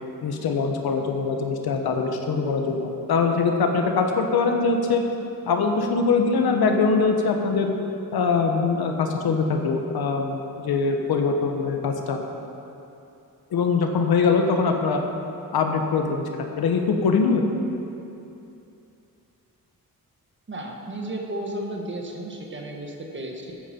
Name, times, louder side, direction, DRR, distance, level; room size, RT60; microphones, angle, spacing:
voice 1, 0.2-5.0 5.5-7.7 8.1-12.2 13.5-15.0 15.5-17.4, left 4 dB, 90° left, 3 dB, 1.1 m, -22 dB
voice 2, 20.5-23.5, right 1 dB, 30° right, 1 dB, 1.4 m, -33 dB
14.0 x 9.1 x 4.4 m, 2.8 s
wide cardioid pair, 140°, 36 cm